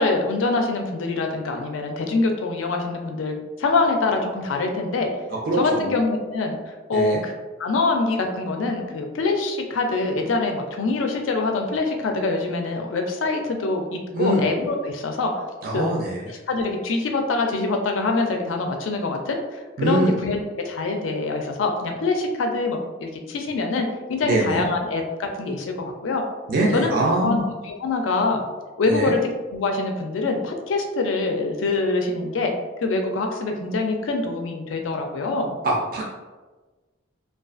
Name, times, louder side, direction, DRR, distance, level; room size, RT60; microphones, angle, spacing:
voice 1, 0.0-5.1 5.6-7.3 7.6-15.3 15.7-15.9 16.3-20.4 20.7-26.2 26.7-26.9 27.2-27.4 27.6-28.4 28.8-32.5 32.8-35.6, left 3 dB, 80° left, 4 dB, 0.4 m, -24 dB
voice 2, 5.3-5.9 6.9-7.2 14.1-14.4 15.6-16.2 19.8-20.1 24.2-24.7 26.5-27.4 28.9-29.1 35.6-36.1, right 2 dB, 45° right, -2 dB, 0.3 m, -23 dB
2.3 x 2.3 x 2.4 m, 1.3 s
head